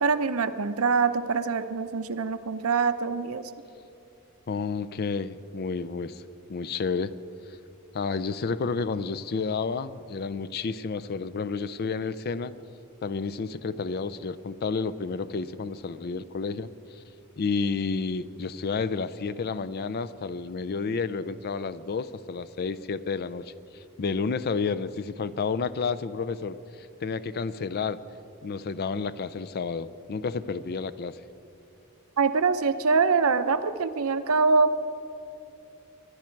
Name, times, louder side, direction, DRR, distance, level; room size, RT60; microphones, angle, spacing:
voice 1, 0.0-3.4 32.2-34.9, right 4 dB, 70° right, 11 dB, 0.7 m, -24 dB
voice 2, 4.5-6.2 6.5-7.1 7.9-12.5 13.0-16.7 17.4-28.0 28.4-31.2, left 4 dB, 45° left, 14 dB, 0.4 m, -30 dB
24.0 x 10.5 x 4.5 m, 2.7 s
head